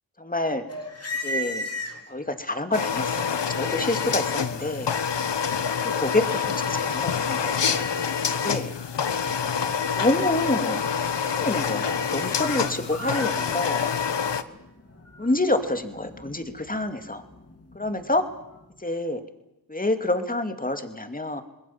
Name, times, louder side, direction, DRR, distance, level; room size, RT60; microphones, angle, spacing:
voice 1, 0.2-0.6 1.2-1.7 2.1-5.0 5.9-8.0 8.4-8.7 10.0-10.8 11.4-13.9 15.2-17.2 17.7-18.2 18.8-19.2 19.7-21.4, left 2 dB, 20° left, 7 dB, 2.6 m, -27 dB
sound 1, 0.7-2.4 3.0-18.8, left 1 dB, 35° left, 3.4 m, -40 dB
sound 2, 2.7-14.4, left 6 dB, 70° left, 1.3 m, -26 dB
27.0 x 20.5 x 7.4 m, 0.91 s
wide cardioid pair, 65°, 43 cm